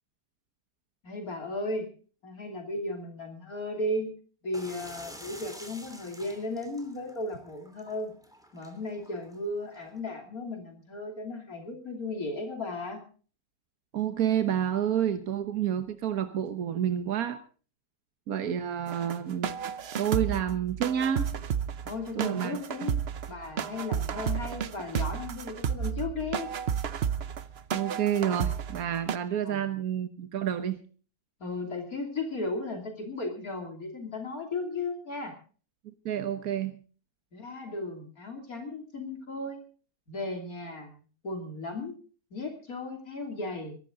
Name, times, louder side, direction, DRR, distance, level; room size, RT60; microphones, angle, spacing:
voice 1, 1.0-1.9 2.2-4.1 4.4-8.1 8.5-13.0 18.9-19.1 21.8-23.0 23.3-26.5 29.4-29.6 31.4-35.4 37.3-39.6 40.1-41.0 41.2-41.9 42.3-43.8, left 2 dB, 75° left, 3 dB, 3.4 m, -35 dB
sound 1, 4.5-10.0, equal, ahead, 3.0 m, -49 dB
voice 2, 13.9-17.4 18.3-19.5 20.0-21.3 22.1-22.6 27.7-30.8 35.8-36.8, right 9 dB, 80° right, 9 dB, 1.6 m, -29 dB
sound 2, 18.9-29.2, right 8 dB, 50° right, 0.9 m, -32 dB
22.5 x 12.0 x 3.8 m, 0.40 s
omnidirectional pair, 1.5 m